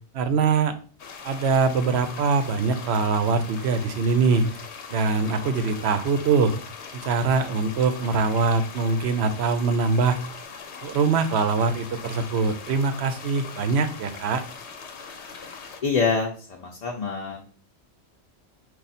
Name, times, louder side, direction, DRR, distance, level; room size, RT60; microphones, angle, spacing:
voice 1, 0.1-0.8 1.2-4.5 4.9-6.6 6.9-10.2 10.8-14.4, right 4 dB, 75° right, 9 dB, 0.9 m, -23 dB
sound 1, 1.0-15.8, left 6 dB, 85° left, 1.0 m, -41 dB
voice 2, 15.8-17.4, left 4 dB, 45° left, -1 dB, 0.6 m, -26 dB
4.9 x 2.4 x 4.1 m, 0.41 s
omnidirectional pair, 1.1 m